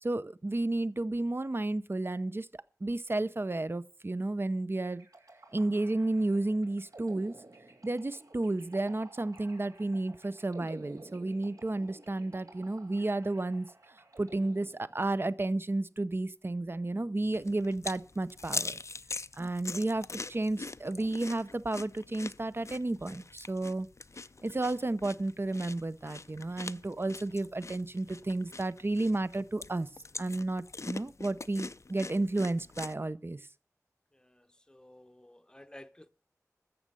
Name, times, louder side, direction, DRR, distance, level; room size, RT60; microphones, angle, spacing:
voice 1, 0.0-5.1 5.5-7.3 7.8-13.7 14.2-18.8 19.4-23.9 24.4-29.9 30.2-33.4, right 2 dB, 40° right, 0.7 m, -32 dB
sound 1, 4.8-15.3, right 2 dB, 75° right, 3.0 m, -53 dB
sound 2, 17.3-32.9, left 3 dB, 55° left, 0.5 m, -43 dB
voice 2, 34.1-36.1, left 1 dB, 15° left, 0.8 m, -54 dB
13.5 x 7.5 x 6.8 m
wide cardioid pair, 60°, 6 cm